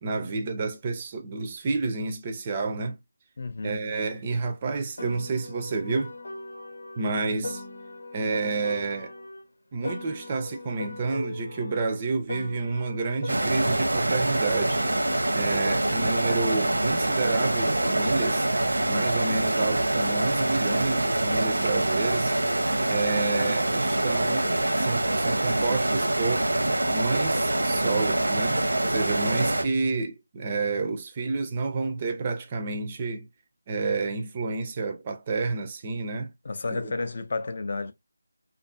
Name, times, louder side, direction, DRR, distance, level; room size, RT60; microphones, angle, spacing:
voice 1, 0.0-3.0 3.6-6.1 7.0-7.6 8.1-9.1 9.7-14.8 15.3-18.5 18.9-22.4 22.9-26.5 26.9-33.3 33.7-36.3 36.7-36.9, right 3 dB, 25° right, 0.4 m, -29 dB
voice 2, 3.4-3.8 36.4-37.9, left 3 dB, 45° left, 0.4 m, -31 dB
Piano, 5.0-9.4 9.8-14.4, left 2 dB, 70° left, 0.7 m, -39 dB
sound 1, 13.3-29.6, right 1 dB, 85° right, 0.7 m, -25 dB
2.5 x 2.5 x 2.4 m
figure-of-eight pair, 165°, 0 cm